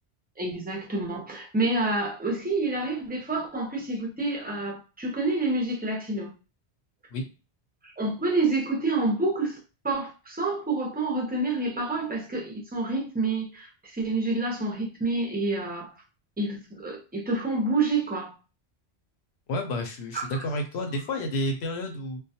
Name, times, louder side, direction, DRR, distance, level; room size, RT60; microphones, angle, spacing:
voice 1, 0.4-6.3 7.8-9.6 9.8-15.9 16.4-18.3 20.1-20.4, right 2 dB, 15° right, 0.3 m, -28 dB
voice 2, 19.5-22.2, left 1 dB, 80° left, 0.9 m, -30 dB
2.3 x 2.1 x 2.7 m
omnidirectional pair, 1.1 m